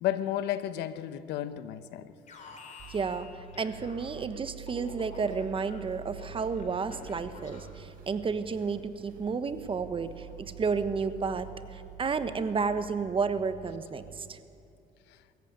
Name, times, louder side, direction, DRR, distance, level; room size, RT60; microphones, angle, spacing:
voice 1, 0.0-2.1, left 12 dB, 90° left, 12 dB, 0.9 m, -32 dB
Alarm, 2.3-4.3 4.7-7.9, left 4 dB, 45° left, 4.0 m, -50 dB
sound 1, 2.8-14.4, right 8 dB, 55° right, 5.5 m, -47 dB
voice 2, 2.9-14.4, right 5 dB, 30° right, 11 dB, 1.1 m, -32 dB
23.0 x 14.5 x 8.8 m, 2.6 s
cardioid pair, 110°, 17 cm